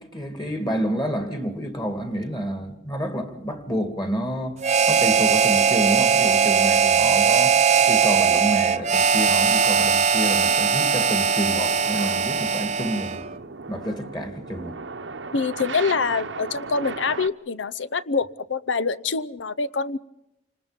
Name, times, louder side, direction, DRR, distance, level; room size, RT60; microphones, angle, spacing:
voice 1, 0.0-4.6 4.9-7.6 7.9-13.3 13.7-14.8, equal, 25° left, 2.6 m, -29 dB
sound 1, 2.7-17.3, right 4 dB, 85° right, 1.0 m, -40 dB
Harmonica, 4.6-13.2, right 6 dB, 40° right, 0.8 m, -20 dB
voice 2, 15.3-20.0, left 4 dB, 90° left, 0.7 m, -25 dB
28.5 x 20.0 x 5.3 m
head